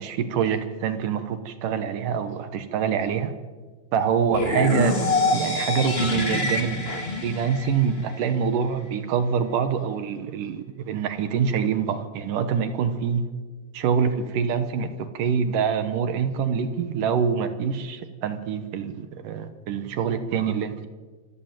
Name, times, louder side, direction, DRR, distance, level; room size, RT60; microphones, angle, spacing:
voice 1, 0.0-3.3 3.9-13.3 13.7-20.9, right 7 dB, 65° right, 11 dB, 2.5 m, -25 dB
sound 1, 4.3-8.3, left 2 dB, 20° left, 2.2 m, -26 dB
26.0 x 13.5 x 9.0 m, 1.4 s
omnidirectional pair, 4.4 m